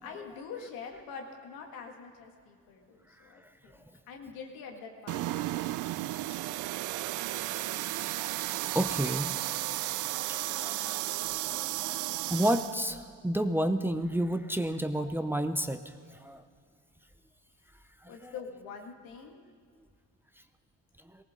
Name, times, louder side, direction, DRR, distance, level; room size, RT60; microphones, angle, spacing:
voice 1, 0.0-5.9 6.3-6.6 18.1-19.4, left 5 dB, 90° left, 2 dB, 2.1 m, -45 dB
sound 1, 5.1-12.8, right 16 dB, 65° right, 0.4 m, -33 dB
voice 2, 8.7-9.4 9.8-9.9 10.1-11.3 11.8-12.0 12.3-15.8 16.2-16.4 18.2-18.3, right 1 dB, 5° right, 8 dB, 0.6 m, -31 dB
18.5 x 18.5 x 3.8 m, 2.1 s
cardioid pair, 120°, 33 cm